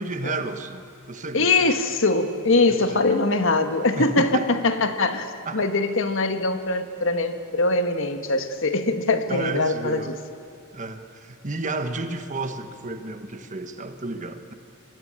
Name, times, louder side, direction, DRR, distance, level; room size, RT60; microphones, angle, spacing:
voice 1, 0.0-1.7 2.7-3.2 3.9-4.5 5.4-5.6 9.3-10.2 10.7-14.5, right 3 dB, 35° right, 8 dB, 1.3 m, -32 dB
voice 2, 1.3-10.1, left 3 dB, 60° left, 8 dB, 1.5 m, -22 dB
25.5 x 21.5 x 8.8 m, 2.5 s
head